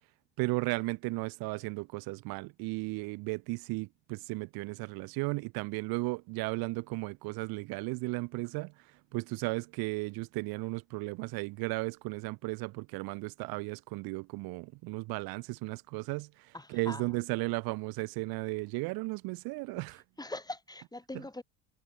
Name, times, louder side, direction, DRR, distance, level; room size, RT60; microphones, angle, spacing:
voice 1, 0.4-8.7 9.1-16.3 16.7-20.0, right 25 dB, 75° right, 5.0 m, -35 dB
voice 2, 16.5-17.2 19.7-19.8 20.2-21.4, left 2 dB, 10° left, 5.8 m, -42 dB
supercardioid pair, 75°, 37 cm